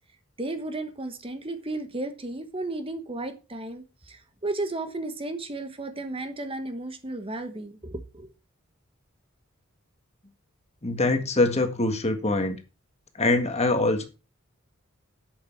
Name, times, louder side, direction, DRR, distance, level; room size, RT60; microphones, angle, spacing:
voice 1, 0.4-8.3, right 2 dB, 25° right, 1.2 m, -34 dB
voice 2, 10.8-12.6 13.1-14.1, left 2 dB, 30° left, 1.7 m, -23 dB
11.5 x 8.0 x 4.6 m
head